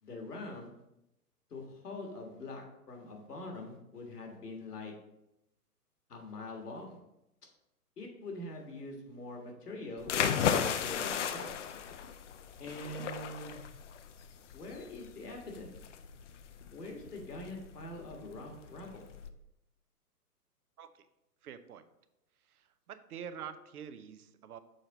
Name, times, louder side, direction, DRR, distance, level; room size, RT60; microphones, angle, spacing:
voice 1, 0.0-0.7 1.5-4.9 6.1-7.0 8.0-10.1 10.4-11.5 12.6-13.7 14.5-15.8 16.7-19.1, left 2 dB, 75° left, 1 dB, 1.7 m, -44 dB
sound 1, 10.0-19.3, left 8 dB, 50° left, 0.5 m, -35 dB
voice 2, 21.4-21.8 22.5-24.6, right 8 dB, 70° right, 12 dB, 0.7 m, -46 dB
6.4 x 4.3 x 3.9 m, 0.88 s
figure-of-eight pair, 120°, 47 cm